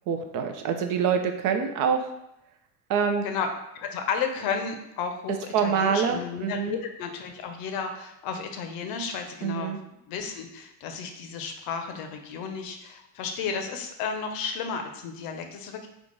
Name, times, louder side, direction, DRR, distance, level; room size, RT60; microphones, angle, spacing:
voice 1, 0.1-2.1 2.9-3.2 5.5-6.8 9.4-9.8, right 7 dB, 45° right, 6 dB, 0.5 m, -25 dB
voice 2, 3.8-9.7 10.1-15.9, left 6 dB, 50° left, 5 dB, 0.7 m, -33 dB
3.7 x 2.4 x 3.8 m, 0.84 s
hypercardioid pair, 85°, 48 cm